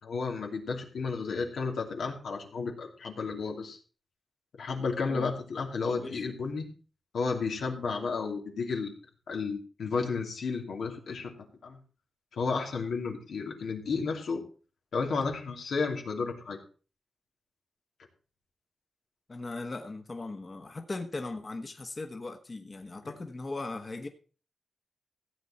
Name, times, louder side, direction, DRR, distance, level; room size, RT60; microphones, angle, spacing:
voice 1, 0.0-3.8 4.6-6.7 7.1-8.9 9.3-11.3 11.6-11.8 12.3-14.4 14.9-16.6, left 4 dB, 90° left, 1 dB, 2.8 m, -32 dB
voice 2, 5.8-6.2 19.3-24.1, left 2 dB, 35° left, 4 dB, 1.3 m, -38 dB
15.5 x 8.5 x 4.3 m, 0.38 s
cardioid pair, 85°, 0 cm